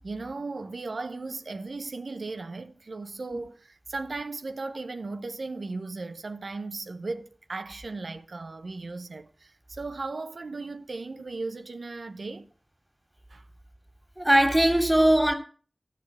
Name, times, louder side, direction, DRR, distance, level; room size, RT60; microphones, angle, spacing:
voice 1, 0.0-12.5 13.3-13.4, right 3 dB, 85° right, 1.0 m, -36 dB
voice 2, 14.2-15.3, right 1 dB, 10° right, 2.6 m, -20 dB
14.5 x 5.1 x 8.4 m
wide cardioid pair, 40°, 0 cm